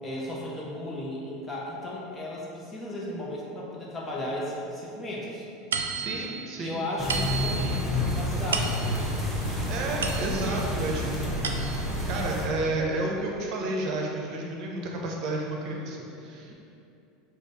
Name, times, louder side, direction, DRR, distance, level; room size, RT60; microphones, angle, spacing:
voice 1, 0.0-5.4 6.6-9.1, left 1 dB, 20° left, -4 dB, 1.1 m, -35 dB
sound 1, 5.7-10.7 11.1-12.0, right 5 dB, 85° right, 0.3 m, -34 dB
voice 2, 5.9-6.8 9.7-11.4 11.7-16.5, right 2 dB, 50° right, 0 dB, 0.8 m, -31 dB
sound 2, 7.0-12.5, left 1 dB, 10° right, 1.1 m, -29 dB
5.0 x 2.5 x 4.0 m, 2.7 s
hypercardioid pair, 85°, 0 cm